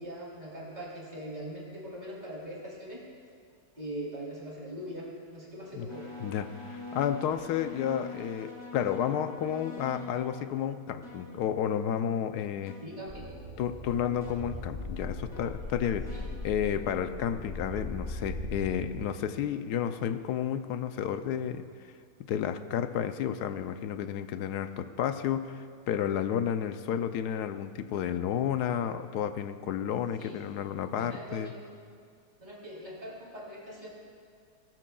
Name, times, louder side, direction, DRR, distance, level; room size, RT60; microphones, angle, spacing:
voice 1, 0.0-3.0 3.8-6.1 12.8-13.3 16.1-16.3 30.2-30.4 31.0-31.6 32.4-33.9, equal, 25° right, -5 dB, 3.5 m, -41 dB
sound 1, 5.9-10.7 11.0-11.4 11.8-12.0 12.7-13.0 14.2-14.4 15.3-15.7 16.1-16.3, left 3 dB, 15° left, 3.0 m, -44 dB
voice 2, 6.2-12.8 13.6-16.1 16.4-21.7 22.2-31.5, left 9 dB, 85° left, 10 dB, 1.2 m, -31 dB
sound 2, 13.1-19.0, left 1 dB, 35° left, 3.5 m, -39 dB
19.5 x 13.5 x 2.3 m, 2.2 s
omnidirectional pair, 1.7 m